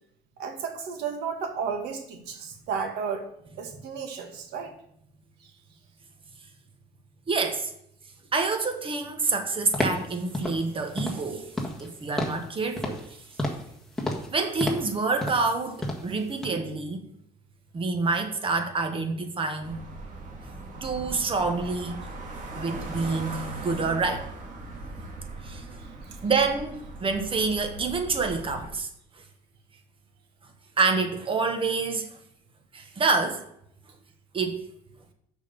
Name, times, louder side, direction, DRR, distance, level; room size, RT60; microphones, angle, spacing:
voice 1, 0.4-3.3 3.6-4.7 5.4-5.5 25.8-26.2, right 6 dB, 85° right, 4 dB, 1.6 m, -33 dB
voice 2, 7.3-7.7 8.3-11.5 11.8-13.0 14.3-17.1 17.7-19.8 20.8-22.1 22.5-24.3 25.4-25.6 26.2-28.9 30.8-32.2 32.7-33.5 34.3-34.7, right 4 dB, 30° right, 5 dB, 1.4 m, -27 dB
sound 1, 9.7-10.1 10.3-10.6 11.0-11.3 11.5-11.9 12.2-12.5 12.8-13.1 13.4-13.7 14.0-14.3 14.6-14.9 15.2-15.5 15.8-16.1 16.4-16.5, left 1 dB, 5° left, 1.7 m, -30 dB
sound 2, 19.6-28.7, right 2 dB, 50° right, 1.9 m, -39 dB
6.4 x 5.2 x 6.8 m, 0.73 s
cardioid pair, 110°, 17 cm